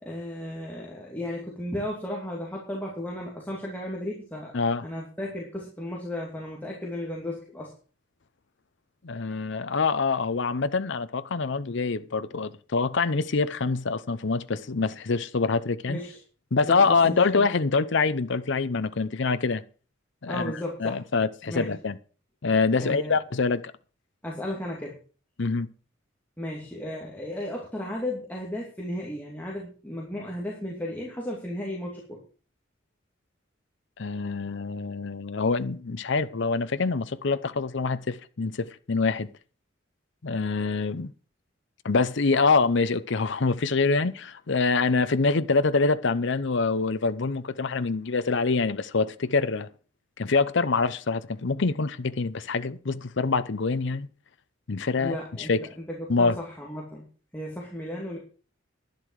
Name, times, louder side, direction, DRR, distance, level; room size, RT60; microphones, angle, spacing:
voice 1, 0.0-4.5 4.8-7.7 15.9-16.2 16.6-17.5 20.3-21.0 21.5-21.8 22.8-23.2 24.2-25.0 26.4-32.2 55.0-55.5 55.8-57.0 57.3-58.2, left 1 dB, 10° left, 2.7 m, -34 dB
voice 2, 9.0-16.0 16.5-19.6 20.2-20.5 20.8-22.0 22.4-23.6 25.4-25.7 34.0-39.3 40.2-41.1 41.8-49.7 50.2-54.1 54.7-55.2 55.5-55.6 56.1-56.4, left 4 dB, 65° left, 0.7 m, -25 dB
11.5 x 11.0 x 4.8 m
head